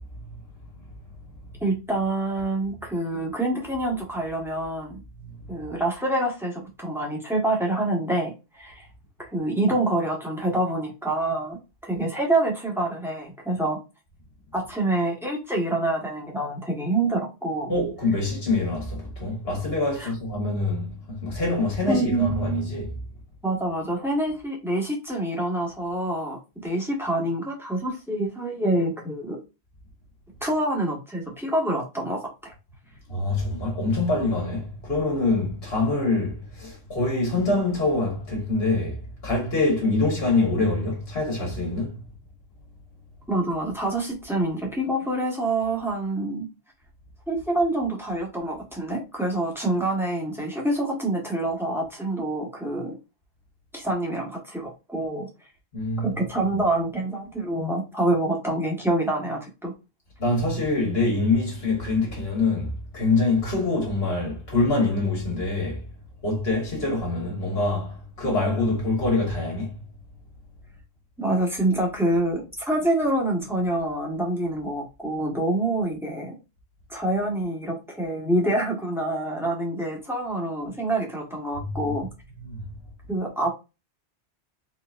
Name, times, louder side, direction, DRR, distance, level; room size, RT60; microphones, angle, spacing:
voice 1, 1.6-5.0 5.5-8.9 9.2-13.8 14.5-17.7 20.0-20.1 21.9-22.6 23.4-29.4 30.4-32.5 43.3-46.5 47.3-52.9 53.7-55.3 56.0-59.7 71.2-76.3 76.9-82.1 83.1-83.5, right 1 dB, ahead, 1.5 m, -26 dB
voice 2, 5.2-5.5 17.7-23.0 33.1-42.0 55.7-56.5 60.2-65.9 66.2-69.8 81.5-81.9 82.3-82.7, left 2 dB, 65° left, 1.8 m, -25 dB
4.1 x 3.8 x 2.6 m
omnidirectional pair, 1.1 m